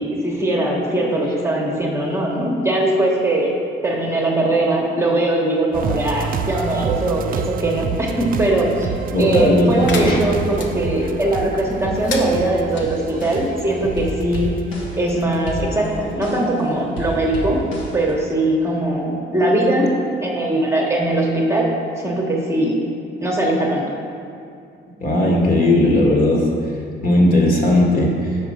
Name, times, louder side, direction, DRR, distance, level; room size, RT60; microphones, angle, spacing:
voice 1, 0.0-3.6 3.8-14.5 14.9-17.6 17.9-19.9 20.2-21.7 22.0-22.7 23.2-23.8, right 1 dB, 15° right, -2 dB, 1.0 m, -20 dB
sound 1, 5.7-16.0 16.4-16.5, right 6 dB, 45° right, 0.4 m, -29 dB
voice 2, 9.1-10.2 11.0-11.1 25.0-26.5 27.0-28.4, left 1 dB, 45° left, -2 dB, 1.5 m, -16 dB
sound 2, 9.9-10.7 11.9-12.9, left 4 dB, 70° left, 0.8 m, -30 dB
sound 3, 12.7-13.7 14.0-15.2 15.5-16.6 17.0-18.1, equal, 90° left, 1.4 m, -31 dB
5.0 x 5.0 x 6.1 m, 2.5 s
cardioid pair, 90°, 20 cm